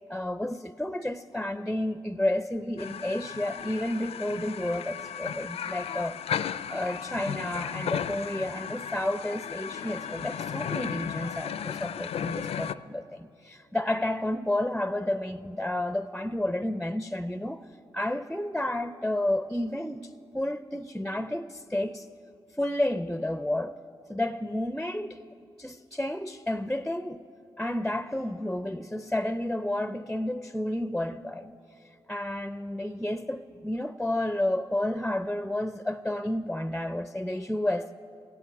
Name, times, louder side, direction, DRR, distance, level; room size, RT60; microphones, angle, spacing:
voice 1, 0.1-17.6 17.9-22.1 22.6-23.8 24.1-25.2 25.6-27.2 27.6-31.5 32.1-37.9, left 1 dB, 5° left, 0.4 m, -31 dB
sound 1, 2.8-12.7, left 8 dB, 65° left, 0.4 m, -35 dB
16.0 x 8.4 x 9.8 m
supercardioid pair, 45°, 11 cm